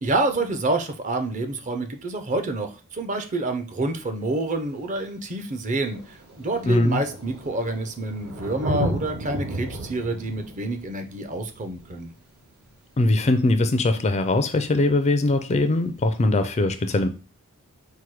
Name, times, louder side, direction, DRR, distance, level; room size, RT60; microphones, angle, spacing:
voice 1, 0.0-12.1, right 2 dB, 35° right, 0.5 m, -27 dB
Thunder, 4.3-4.4 5.3-5.4 5.7-13.0 14.7-14.8, right 1 dB, 75° right, 1.1 m, -34 dB
voice 2, 6.6-7.0 13.0-17.1, left 2 dB, 30° left, 0.4 m, -21 dB
4.5 x 2.2 x 4.6 m
head